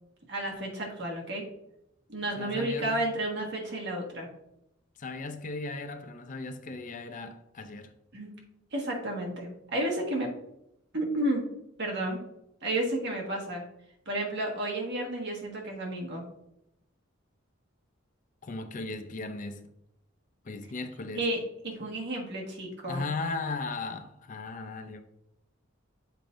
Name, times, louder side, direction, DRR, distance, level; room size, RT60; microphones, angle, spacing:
voice 1, 0.3-1.4 2.1-4.3 8.1-8.3 8.7-10.3 10.9-11.5 11.8-12.2 12.6-13.6 14.0-16.2 21.1-23.1, right 1 dB, 60° right, 1.5 m, -32 dB
voice 2, 2.4-3.0 5.0-7.9 18.4-19.7 20.4-21.2 22.9-25.0, left 3 dB, 40° left, 0.5 m, -37 dB
7.4 x 5.0 x 2.6 m
head